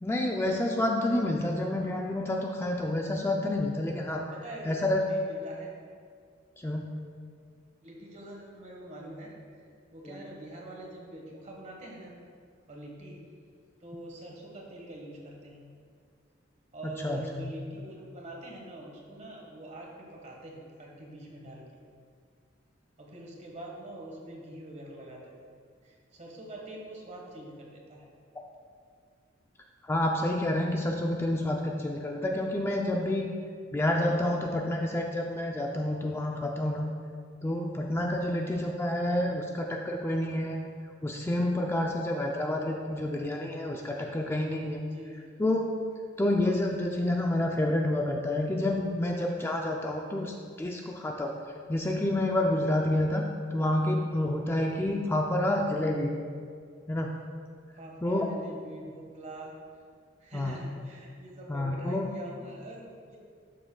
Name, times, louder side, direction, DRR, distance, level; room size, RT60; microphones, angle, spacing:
voice 1, 0.0-4.3 4.7-5.0 6.6-6.8 10.0-10.2 16.8-17.5 29.8-33.3 33.7-36.9 37.4-40.6 41.0-44.8 45.4-45.7 46.2-51.4 51.7-53.2 53.5-56.1 56.9-57.1 58.0-58.3 60.3-60.6 61.5-62.0, left 1 dB, 15° left, 0 dB, 0.4 m, -29 dB
voice 2, 4.3-5.7 7.8-9.3 9.9-12.1 12.7-13.2 13.8-15.7 16.7-21.6 23.0-25.3 25.8-28.0 38.2-38.7 44.9-45.3 54.7-55.1 57.7-59.5 60.2-63.2, right 1 dB, 40° right, -1 dB, 1.5 m, -44 dB
11.5 x 6.7 x 2.3 m, 2.1 s
head